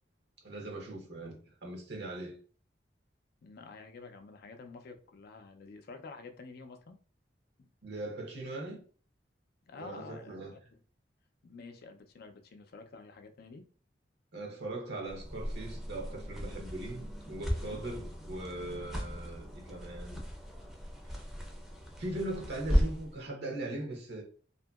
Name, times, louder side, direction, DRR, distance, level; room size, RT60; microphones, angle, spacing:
voice 1, 0.4-2.4 7.8-8.8 9.8-10.5 14.3-20.2 22.0-24.2, right 2 dB, 65° right, 0.7 m, -40 dB
voice 2, 3.4-7.0 7.6-7.7 9.7-10.4 10.7-10.8 11.4-13.7 17.6-17.9, left 4 dB, 60° left, 0.4 m, -49 dB
sound 1, 15.1-23.2, equal, ahead, 0.5 m, -36 dB
2.7 x 2.5 x 2.3 m
head